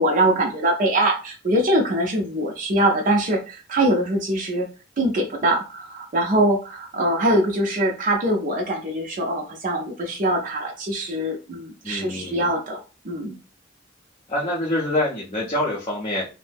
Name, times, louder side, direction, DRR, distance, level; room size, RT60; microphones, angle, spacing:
voice 1, 0.0-4.7 5.0-13.3, right 1 dB, 45° right, 1 dB, 0.6 m, -23 dB
voice 2, 11.8-12.5 14.3-16.3, left 1 dB, 30° left, -4 dB, 0.6 m, -25 dB
2.6 x 2.0 x 3.4 m, 0.32 s
head